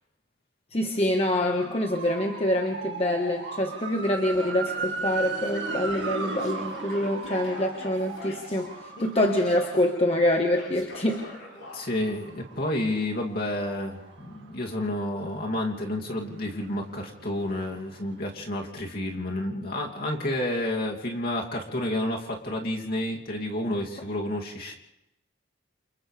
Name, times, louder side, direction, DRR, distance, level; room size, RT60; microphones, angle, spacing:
voice 1, 0.7-8.7 9.0-11.2, left 1 dB, 30° left, 2 dB, 1.4 m, -25 dB
sound 1, 1.3-15.0 15.4-18.0 18.3-18.4, right 4 dB, 65° right, 2.0 m, -38 dB
Male speech man speaking / Yell, 4.3-5.0 5.4-8.7 8.9-9.9 10.5-11.9, left 2 dB, 85° left, 6.1 m, -44 dB
voice 2, 11.7-24.7, left 1 dB, 50° left, -1 dB, 2.7 m, -30 dB
29.0 x 28.0 x 3.4 m, 0.86 s
head